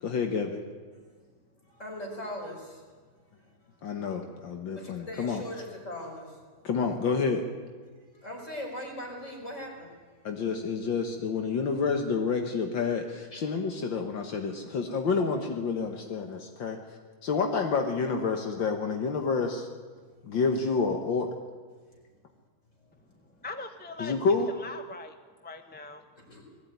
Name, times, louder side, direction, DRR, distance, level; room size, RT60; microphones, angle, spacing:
voice 1, 0.0-0.6 3.8-5.4 6.6-7.4 10.2-16.8 17.2-19.7 20.2-21.3 24.0-24.5, left 5 dB, 70° left, 4 dB, 2.1 m, -29 dB
voice 2, 1.7-2.8 4.7-6.4 8.1-10.0 13.3-13.4 26.2-26.4, left 1 dB, 35° left, 0 dB, 5.6 m, -40 dB
voice 3, 23.4-25.2 25.4-26.0, left 2 dB, 5° left, 7 dB, 0.7 m, -41 dB
20.0 x 15.5 x 9.5 m, 1.4 s
omnidirectional pair, 2.1 m